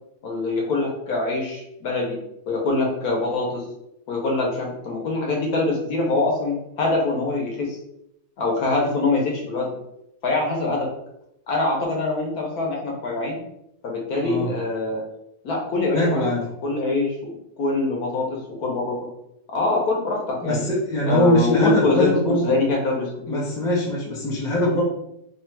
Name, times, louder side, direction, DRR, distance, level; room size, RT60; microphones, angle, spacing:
voice 1, 0.2-2.2 2.5-3.6 4.1-7.8 8.4-9.7 10.2-10.9 11.5-13.4 13.8-15.0 15.4-16.2 16.6-19.0 19.5-20.6 21.1-23.4, left 3 dB, 60° left, -1 dB, 1.2 m, -24 dB
voice 2, 15.9-16.4 20.4-22.5 23.3-24.8, left 1 dB, 5° left, -4 dB, 0.3 m, -22 dB
3.2 x 2.4 x 4.4 m, 0.81 s
omnidirectional pair, 2.0 m